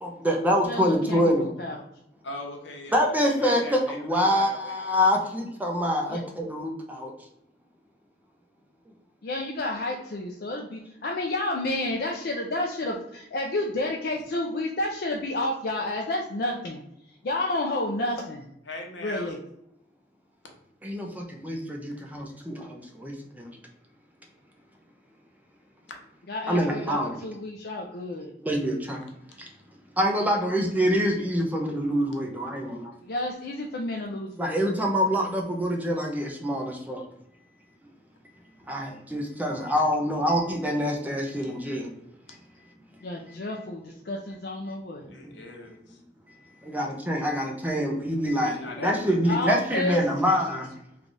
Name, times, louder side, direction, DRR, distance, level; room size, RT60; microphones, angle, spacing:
voice 1, 0.0-1.5 2.9-7.1 20.8-23.5 26.5-27.2 28.4-29.0 30.0-32.9 34.4-37.0 38.7-41.9 45.2-45.3 46.6-48.5 48.8-50.7, equal, 10° right, 1 dB, 0.5 m, -26 dB
voice 2, 0.6-1.8 6.1-6.2 9.2-16.8 17.2-18.4 19.0-19.4 26.3-27.0 27.2-28.3 33.0-34.6 43.0-45.1 49.3-50.0, left 2 dB, 55° left, 0 dB, 0.4 m, -30 dB
voice 3, 2.2-5.3 18.7-19.3 45.1-46.0 48.4-50.4, left 2 dB, 80° left, 2 dB, 0.9 m, -40 dB
3.3 x 2.4 x 3.9 m, 0.78 s
head